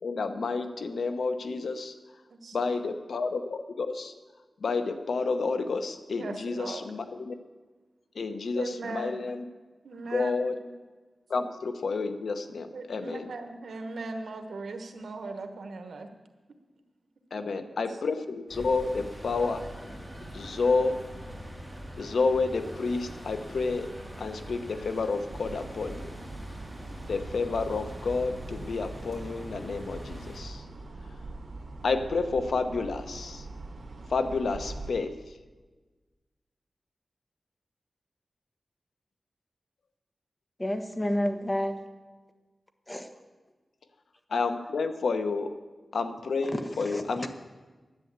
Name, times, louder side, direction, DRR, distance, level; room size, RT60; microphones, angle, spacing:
voice 1, 0.0-1.9 2.5-4.1 4.6-7.3 8.1-9.4 10.1-10.6 11.3-13.2 17.3-19.6 20.3-21.0 22.0-23.9 24.2-26.1 27.1-30.6 31.8-33.4 34.1-35.1 44.3-45.5 45.9-47.3, left 4 dB, 85° left, 8 dB, 0.8 m, -30 dB
voice 2, 2.3-2.8 6.2-6.8 8.5-9.2 9.8-10.5 12.7-16.1 17.3-17.6 17.9-18.0, right 3 dB, 90° right, 6 dB, 1.1 m, -39 dB
sound 1, 18.5-30.4, equal, 5° right, 3.9 m, -43 dB
sound 2, 25.3-34.9, right 2 dB, 70° right, 1.9 m, -43 dB
voice 3, 40.6-41.8 42.9-43.1 46.5-47.3, left 1 dB, 20° left, 6 dB, 1.2 m, -30 dB
10.5 x 9.1 x 8.0 m, 1.3 s
wide cardioid pair, 85°, 0 cm